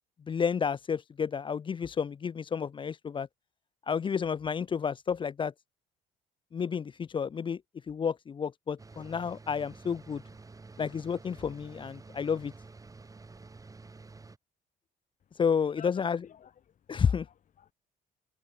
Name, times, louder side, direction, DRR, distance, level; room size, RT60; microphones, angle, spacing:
voice 1, 0.3-3.3 3.9-5.5 6.5-10.2 10.8-12.5 15.3-16.2 16.9-17.3, left 6 dB, 30° left, 0.6 m, -31 dB
sound 1, 8.8-14.4, right 3 dB, 20° right, 5.2 m, -50 dB
voice 2, 15.2-17.7, left 9 dB, 50° left, 7.7 m, -54 dB
open air
cardioid pair, 110°, 17 cm